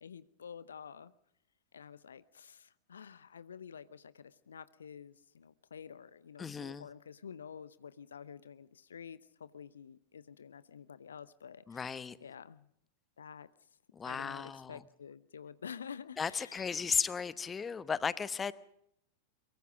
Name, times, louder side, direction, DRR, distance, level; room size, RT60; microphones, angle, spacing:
voice 1, 0.0-1.1 1.7-11.9 12.2-12.7 13.2-13.5 14.0-16.7, left 7 dB, 70° left, 17 dB, 0.8 m, -49 dB
voice 2, 6.4-6.9 11.7-12.2 13.9-14.8 16.2-18.5, left 6 dB, 20° left, 17 dB, 1.0 m, -35 dB
23.5 x 23.0 x 5.2 m, 0.72 s
figure-of-eight pair, 90°, 0 cm